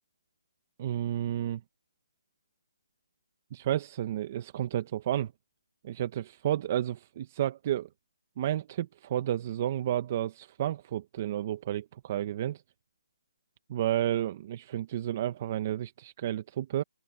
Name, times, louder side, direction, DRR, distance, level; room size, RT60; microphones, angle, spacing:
voice 1, 0.8-1.6 3.5-5.3 5.8-7.9 8.4-12.6 13.7-16.8, right 12 dB, 30° right, 1.0 m, -31 dB
open air
hypercardioid pair, 165°, 2 cm